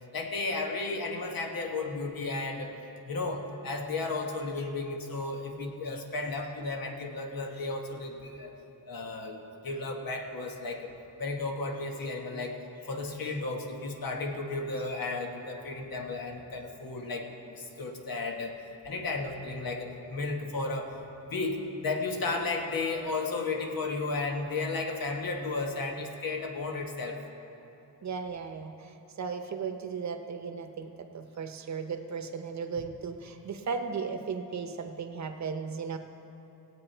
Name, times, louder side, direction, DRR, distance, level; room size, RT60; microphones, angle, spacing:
voice 1, 0.1-2.8 3.1-8.5 8.9-12.6 12.8-18.6 18.8-20.9 21.3-27.2, left 3 dB, 75° left, 2 dB, 1.4 m, -34 dB
voice 2, 28.0-28.7 29.2-36.0, right 5 dB, 50° right, 6 dB, 0.9 m, -36 dB
17.5 x 8.4 x 4.5 m, 2.9 s
wide cardioid pair, 160°, 35 cm